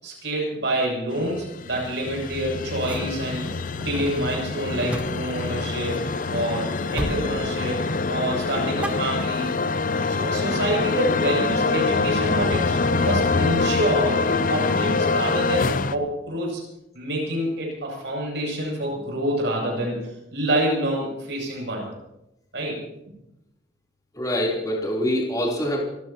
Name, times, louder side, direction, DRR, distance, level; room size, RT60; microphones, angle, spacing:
voice 1, 0.0-6.0 6.3-7.8 8.1-9.5 10.1-16.6 16.9-20.0 20.3-21.9 22.5-22.8, right 1 dB, 70° right, -1 dB, 7.9 m, -27 dB
sound 1, 1.2-16.0, left 4 dB, 45° left, 0.6 m, -25 dB
sound 2, 2.3-6.5 6.9-7.3 7.6-8.1 8.4-9.7, right 1 dB, 5° right, 0.9 m, -36 dB
voice 2, 24.1-25.8, equal, 20° left, -3 dB, 3.7 m, -25 dB
29.0 x 15.5 x 3.0 m, 0.86 s
head